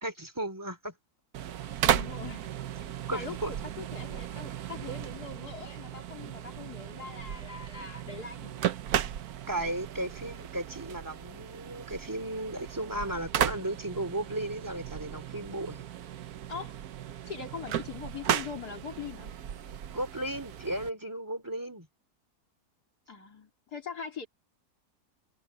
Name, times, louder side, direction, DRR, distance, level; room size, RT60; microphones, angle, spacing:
voice 1, 0.0-0.9 3.1-3.5 9.5-15.8 19.9-21.9, right 1 dB, 10° right, 2.8 m, -35 dB
sound 1, 1.3-20.9, right 10 dB, 75° right, 1.3 m, -35 dB
voice 2, 1.8-2.5 3.1-8.7 16.5-16.7 17.3-19.3 23.1-24.3, left 5 dB, 80° left, 3.7 m, -42 dB
omnidirectional pair, 1.7 m